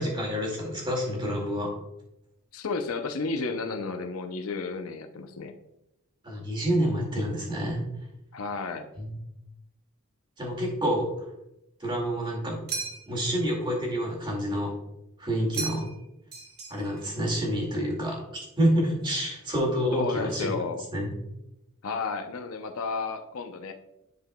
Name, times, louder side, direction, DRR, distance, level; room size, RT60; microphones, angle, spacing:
voice 1, 0.0-1.7 6.2-7.8 9.0-9.2 10.4-11.2 11.8-12.6 13.1-14.8 15.2-15.9 16.7-18.2 18.6-20.5 20.9-21.1, equal, 20° right, -2 dB, 2.1 m, -28 dB
voice 2, 2.5-5.5 8.3-8.9 19.9-20.8 21.8-23.7, left 4 dB, 75° left, 6 dB, 0.6 m, -32 dB
sound 1, 12.7-13.3 15.5-16.0 16.3-17.1, right 4 dB, 50° right, 1.4 m, -36 dB
10.5 x 4.8 x 2.2 m, 0.87 s
head